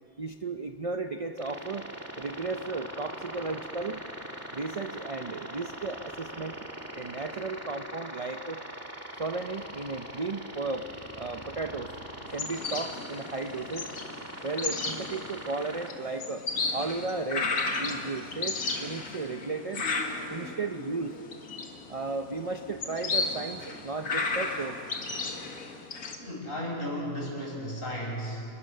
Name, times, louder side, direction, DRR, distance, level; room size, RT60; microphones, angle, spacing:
voice 1, 0.2-1.9 2.2-4.0 4.5-6.6 6.9-8.6 9.2-11.9 12.3-13.9 14.4-16.5 16.7-19.8 20.3-21.2 21.9-24.8, right 3 dB, 35° right, 7 dB, 0.5 m, -34 dB
sound 1, 1.4-15.9, right 1 dB, 10° right, 2.3 m, -42 dB
sound 2, 12.3-26.2, left 3 dB, 85° left, 2.3 m, -34 dB
voice 2, 26.2-28.5, equal, 40° left, -2 dB, 6.5 m, -34 dB
29.5 x 21.0 x 6.7 m, 2.7 s
omnidirectional pair, 1.5 m